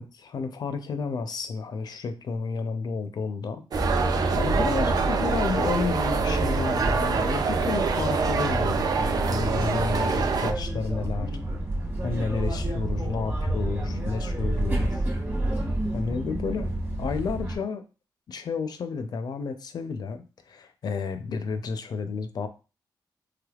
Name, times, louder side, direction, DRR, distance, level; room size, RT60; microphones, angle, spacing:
voice 1, 0.0-3.6 4.4-11.4 12.0-15.1 15.9-16.7 17.0-17.9 18.3-22.5, left 5 dB, 60° left, 9 dB, 0.5 m, -31 dB
sound 1, 3.7-17.6, right 1 dB, 25° right, 1.1 m, -29 dB
sound 2, 3.7-10.5, right 5 dB, 55° right, 0.4 m, -26 dB
3.3 x 3.3 x 2.3 m, 0.32 s
wide cardioid pair, 140°, 8 cm